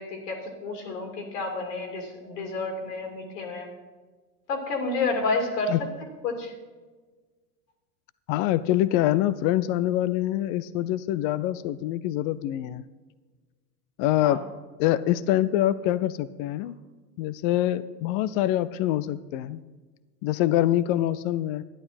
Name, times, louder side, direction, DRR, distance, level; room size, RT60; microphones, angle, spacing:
voice 1, 0.0-3.7 4.5-5.7 6.2-6.5 14.2-14.4, left 3 dB, 75° left, 3 dB, 2.9 m, -30 dB
voice 2, 8.3-12.8 14.0-14.4 14.8-16.8 17.2-19.6 20.2-21.6, left 13 dB, 50° left, 16 dB, 0.6 m, -25 dB
11.5 x 10.5 x 4.3 m, 1.3 s
hypercardioid pair, 85°, 48 cm